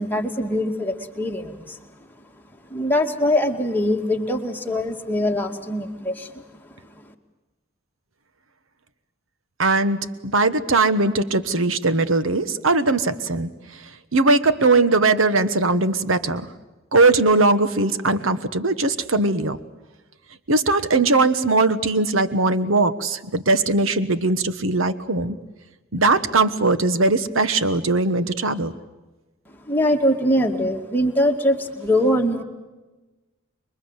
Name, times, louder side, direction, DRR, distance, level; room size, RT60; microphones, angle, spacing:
voice 1, 0.0-1.8 2.7-6.4 29.6-32.4, left 1 dB, 10° left, 2 dB, 2.3 m, -22 dB
voice 2, 9.6-16.5 16.9-19.6 20.5-25.3 25.9-28.7, right 3 dB, 80° right, 12 dB, 1.3 m, -20 dB
27.0 x 23.0 x 8.1 m, 1.1 s
head